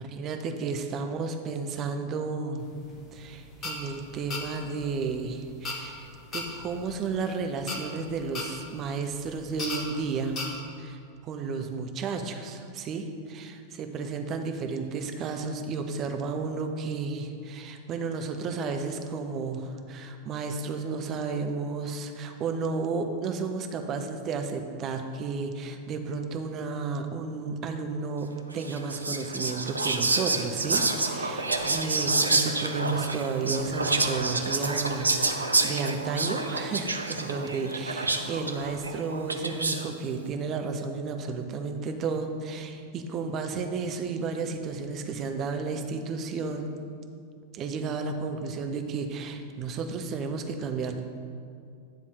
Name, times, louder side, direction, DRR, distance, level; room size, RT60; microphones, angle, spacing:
voice 1, 0.0-2.7 3.1-10.4 10.8-46.7 47.5-51.0, right 4 dB, 30° right, 5 dB, 0.7 m, -32 dB
sound 1, 2.6-10.4, left 3 dB, 30° left, 1.3 m, -38 dB
Whispering, 28.6-39.9, right 3 dB, 80° right, 0.5 m, -28 dB
9.7 x 3.5 x 6.4 m, 2.4 s
figure-of-eight pair, 90°, 0 cm